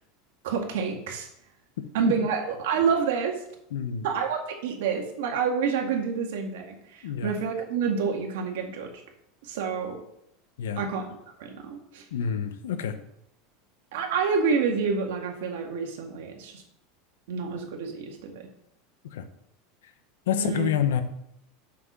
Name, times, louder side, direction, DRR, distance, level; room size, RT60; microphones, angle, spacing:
voice 1, 0.4-1.3 1.9-3.4 4.0-8.9 9.4-10.0 10.8-12.0 13.9-16.6 17.3-18.5 20.3-20.7, right 6 dB, 80° right, 2 dB, 1.9 m, -28 dB
voice 2, 3.7-4.0 7.0-7.3 10.6-10.8 12.1-12.9 19.1-19.2 20.3-21.0, left 8 dB, 90° left, 10 dB, 0.9 m, -27 dB
6.0 x 5.8 x 6.0 m, 0.76 s
supercardioid pair, 120°, 0 cm